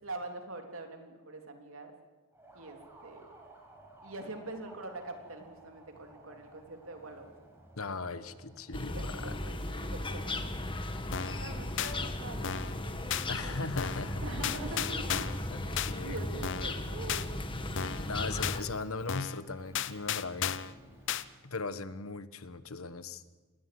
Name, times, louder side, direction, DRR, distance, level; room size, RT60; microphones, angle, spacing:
voice 1, 0.0-1.9 2.5-3.3 4.0-7.3 8.9-10.4 11.4-15.3 15.6-17.2, right 2 dB, 70° right, 4 dB, 3.4 m, -44 dB
Motorcycle, 2.3-21.3, right 1 dB, 10° right, 5.8 m, -54 dB
voice 2, 7.8-9.3 13.3-14.2 15.5-16.4 18.0-20.5 21.4-23.2, left 3 dB, 80° left, 13 dB, 1.3 m, -38 dB
sound 1, 8.7-18.6, left 1 dB, 25° left, 1.7 m, -36 dB
sound 2, 11.1-11.4 11.8-11.9 12.4-12.8 13.1-13.3 13.8-14.1 14.4-15.4 15.8-15.9 16.4-16.8 17.1-17.3 17.8-18.1 18.4-18.6 19.1-19.4 19.7-20.7 21.1-21.2, left 9 dB, 60° left, 0.8 m, -34 dB
26.0 x 20.0 x 7.8 m, 1.3 s
head